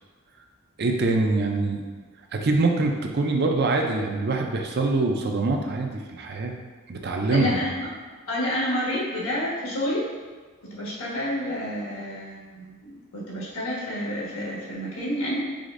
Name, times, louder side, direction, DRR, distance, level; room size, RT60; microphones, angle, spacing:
voice 1, 0.8-1.8 2.3-6.6 6.9-7.6, right 3 dB, 50° right, 2 dB, 0.5 m, -24 dB
voice 2, 7.3-7.9 8.3-10.1 10.6-15.4, left 1 dB, 90° left, -6 dB, 1.5 m, -29 dB
5.0 x 3.9 x 2.6 m, 1.4 s
head